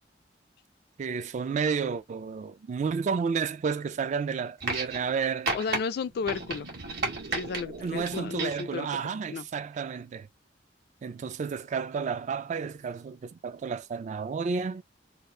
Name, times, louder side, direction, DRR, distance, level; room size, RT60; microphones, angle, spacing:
voice 1, 1.0-5.5 7.8-10.3 11.0-14.8, right 5 dB, 40° right, 0.3 m, -31 dB
sound 1, 4.6-5.2 5.5-5.8 6.3-7.6 8.1-8.7 9.7-9.8, right 3 dB, 60° right, 1.2 m, -32 dB
voice 2, 5.5-6.7 7.4-9.5, left 5 dB, 60° left, 0.3 m, -33 dB
sound 2, 6.0-8.5, right 2 dB, 85° right, 0.9 m, -45 dB
2.7 x 2.4 x 3.1 m
head